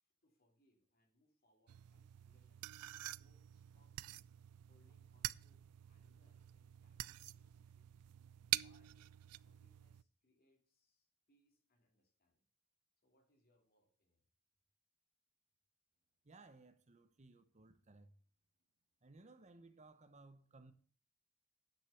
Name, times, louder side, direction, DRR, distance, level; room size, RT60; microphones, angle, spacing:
voice 1, 0.0-4.1 4.7-8.1 8.5-12.4 13.0-14.3, left 1 dB, 45° left, 2.8 m, -78 dB
sound 1, 1.7-10.0, right 15 dB, 90° right, 0.4 m, -46 dB
voice 2, 16.2-18.1 19.0-20.7, right 3 dB, 30° right, 0.8 m, -61 dB
10.0 x 6.2 x 6.9 m
head